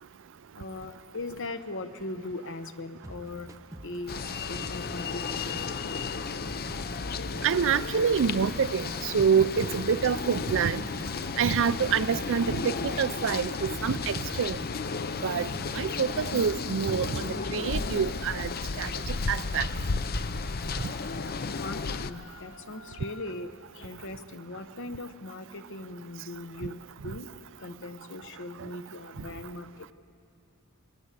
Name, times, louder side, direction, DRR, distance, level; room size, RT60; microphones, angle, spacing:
voice 1, 0.5-3.6 3.8-6.0 21.6-27.3 27.6-29.9, left 2 dB, 60° left, 1.1 m, -40 dB
sound 1, 3.0-5.7 6.0-8.7 8.9-12.3 12.6-13.0 13.3-16.6 16.9-17.6, right 1 dB, 15° right, 1.0 m, -46 dB
sound 2, 4.1-22.1, left 4 dB, 45° left, 0.6 m, -33 dB
voice 2, 7.4-10.8 11.4-14.6 15.2-18.5 18.8-19.7, right 6 dB, 60° right, 0.5 m, -27 dB
27.0 x 21.0 x 8.3 m
head